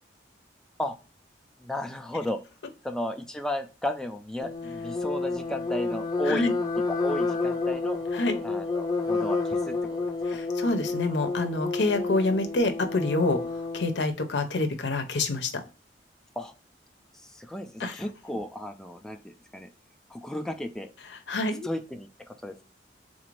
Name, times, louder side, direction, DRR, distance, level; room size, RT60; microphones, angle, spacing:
voice 1, 1.6-2.4 2.8-6.5 6.9-8.0 8.4-10.5 16.4-16.5 17.2-19.7 20.1-20.9 21.6-22.6, left 1 dB, 5° left, 5 dB, 0.3 m, -34 dB
sound 1, 4.4-14.0, left 3 dB, 25° left, 0.7 m, -30 dB
voice 2, 10.3-13.4 13.7-15.5 17.8-17.9 21.3-21.7, left 2 dB, 85° left, 7 dB, 0.7 m, -27 dB
3.9 x 2.5 x 3.1 m, 0.33 s
head